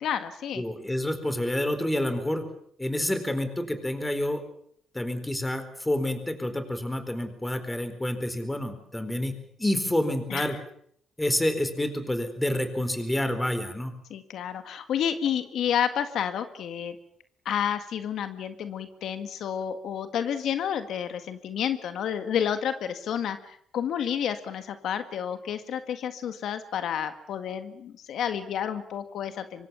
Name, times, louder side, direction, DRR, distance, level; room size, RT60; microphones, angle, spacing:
voice 1, 0.0-0.6 10.3-10.5 14.1-17.0 17.5-29.7, left 9 dB, 80° left, 9 dB, 1.8 m, -30 dB
voice 2, 0.5-2.4 2.8-4.4 4.9-9.3 9.6-10.6 11.2-13.9, left 1 dB, 10° left, 9 dB, 4.2 m, -28 dB
25.0 x 23.5 x 7.0 m, 0.65 s
cardioid pair, 115°, 0 cm